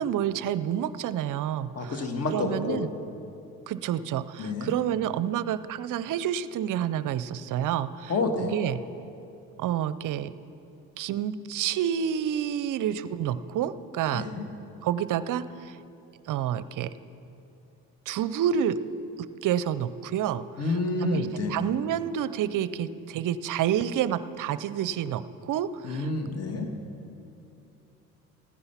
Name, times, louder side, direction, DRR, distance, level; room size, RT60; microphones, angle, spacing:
voice 1, 0.0-2.0 2.3-2.9 3.7-8.1 8.4-8.8 9.6-10.3 11.0-14.3 14.8-15.8 16.3-16.9 18.1-18.8 19.4-20.4 21.0-26.1, right 10 dB, 50° right, 15 dB, 0.6 m, -29 dB
voice 2, 1.7-2.8 4.4-4.7 8.1-8.5 14.1-14.4 20.6-21.6 25.8-26.7, left 3 dB, 40° left, 4 dB, 1.6 m, -29 dB
14.5 x 9.7 x 5.7 m, 2.7 s
supercardioid pair, 70°, 40 cm